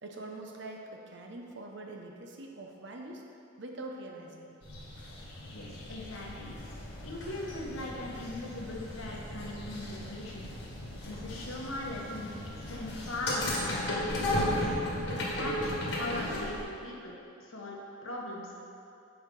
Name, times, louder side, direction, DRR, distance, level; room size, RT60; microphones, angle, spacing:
voice 1, 0.0-3.2 3.6-4.6 6.0-6.1, right 2 dB, 55° right, 1 dB, 0.7 m, -44 dB
sound 1, 4.6-16.6, left 1 dB, 55° left, 1.5 m, -35 dB
voice 2, 5.5-6.6 7.0-10.5 11.0-14.7 15.1-18.6, left 1 dB, 75° left, -2 dB, 1.2 m, -40 dB
7.2 x 4.8 x 5.2 m, 2.6 s
head